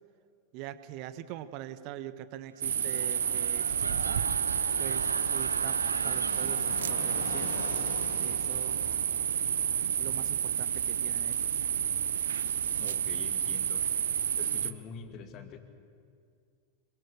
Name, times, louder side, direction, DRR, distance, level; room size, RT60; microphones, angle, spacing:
voice 1, 0.5-4.2 4.8-7.7 8.2-8.8 10.0-11.6, right 12 dB, 45° right, 12 dB, 1.2 m, -43 dB
sound 1, 2.5-8.4 8.8-9.1, right 2 dB, 85° right, 1.2 m, -41 dB
sound 2, 2.6-14.7, right 9 dB, 65° right, 0.9 m, -30 dB
Fixed-wing aircraft airplane, 3.2-10.0, left 4 dB, 70° left, 2.6 m, -43 dB
voice 2, 12.8-13.8 14.4-15.6, left 6 dB, 35° left, 8 dB, 2.3 m, -45 dB
27.0 x 22.5 x 6.7 m, 2.3 s
figure-of-eight pair, 90°, 0 cm